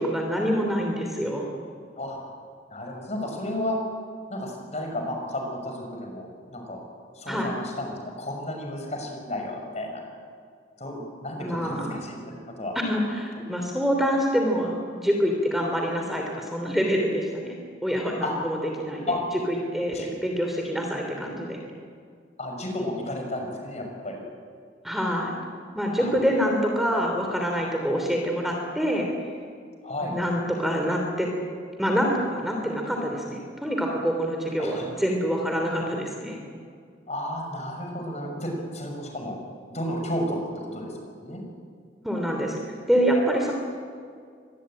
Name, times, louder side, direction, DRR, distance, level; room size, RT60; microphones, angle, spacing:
voice 1, 0.0-1.5 7.3-7.5 11.4-11.9 12.8-19.1 19.5-21.6 24.8-25.3 25.7-29.1 30.0-31.3 31.8-36.4 42.0-42.6 42.9-43.5, equal, ahead, 1 dB, 3.1 m, -26 dB
voice 2, 2.7-3.8 4.3-6.8 7.2-10.0 10.8-12.7 17.9-18.3 19.1-19.2 19.9-20.1 22.4-24.2 26.0-26.1 29.8-30.2 34.6-34.9 37.1-39.4 39.7-41.4, left 1 dB, 40° left, 2 dB, 6.4 m, -32 dB
25.0 x 20.5 x 8.9 m, 2.1 s
head